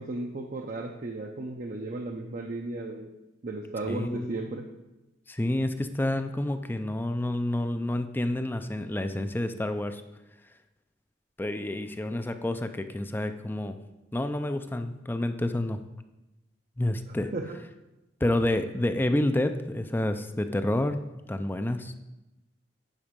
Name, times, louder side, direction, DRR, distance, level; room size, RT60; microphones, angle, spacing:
voice 1, 0.0-3.1 3.4-4.6 17.1-17.6, right 2 dB, 50° right, 2 dB, 0.7 m, -35 dB
voice 2, 3.9-4.3 5.3-10.0 11.4-13.8 14.1-15.8 16.8-17.3 18.2-21.0 21.3-21.9, left 1 dB, 10° left, 9 dB, 0.4 m, -29 dB
10.0 x 5.3 x 5.2 m, 0.99 s
head